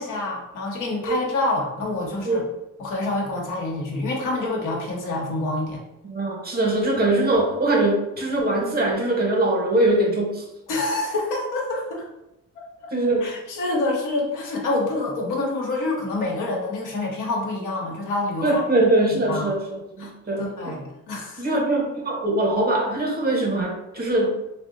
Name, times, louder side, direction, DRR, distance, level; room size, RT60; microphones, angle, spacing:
voice 1, 0.0-2.4 2.8-5.8 10.7-12.0 12.6-12.7 13.2-18.6 19.3-19.5 20.0-20.1 20.4-21.6, left 2 dB, 85° left, -2 dB, 0.9 m, -27 dB
voice 2, 6.0-10.4 12.9-13.4 18.4-20.7 21.4-24.5, right 2 dB, 30° right, 1 dB, 0.8 m, -22 dB
2.7 x 2.0 x 3.8 m, 0.90 s
cardioid pair, 90°, 30 cm